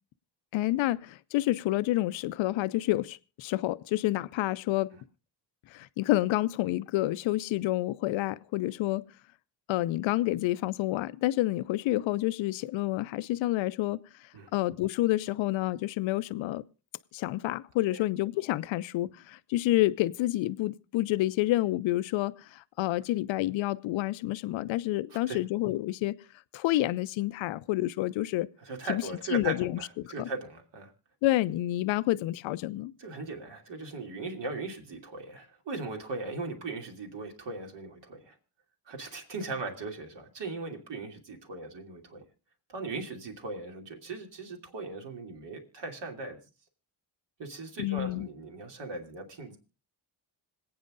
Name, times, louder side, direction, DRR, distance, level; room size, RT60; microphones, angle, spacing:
voice 1, 0.5-4.9 5.7-9.0 9.7-16.6 17.1-26.2 26.5-28.5 28.9-29.0 29.3-29.7 30.0-30.3 31.2-32.9 47.8-48.3, left 16 dB, 90° left, 0.6 m, -29 dB
voice 2, 28.6-30.9 33.0-38.4 38.9-42.2 42.7-46.4 47.4-49.6, right 3 dB, 65° right, 2.8 m, -38 dB
26.5 x 8.8 x 2.5 m
cardioid pair, 75°, 45 cm